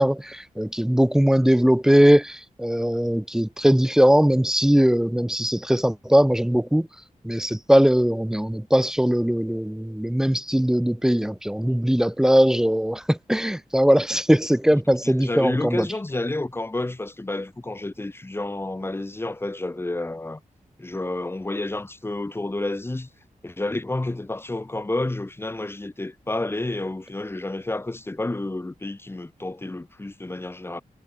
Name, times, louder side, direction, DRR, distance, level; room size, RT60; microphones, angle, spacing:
voice 1, 0.0-6.9 7.2-15.9, equal, 5° right, 0.6 m, -20 dB
voice 2, 15.0-20.4 20.8-23.1 23.4-30.8, left 2 dB, 15° left, 5.3 m, -30 dB
wide cardioid pair, 180°, 14 cm